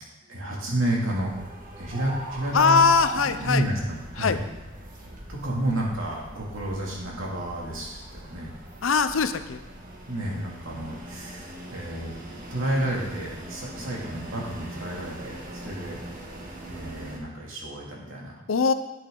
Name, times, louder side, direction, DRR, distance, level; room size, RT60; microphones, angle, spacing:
voice 1, 0.2-1.4 1.8-2.9 3.1-4.4 5.3-8.5 10.1-12.1 12.5-16.0 16.7-18.3, right 1 dB, 85° right, -3 dB, 2.6 m, -30 dB
sound 1, 1.0-17.2, right 1 dB, 45° right, 1.6 m, -41 dB
voice 2, 2.5-3.7 4.2-4.4 8.8-9.6 18.5-18.7, left 5 dB, 80° left, 11 dB, 0.6 m, -21 dB
11.0 x 8.7 x 3.8 m, 1.0 s
head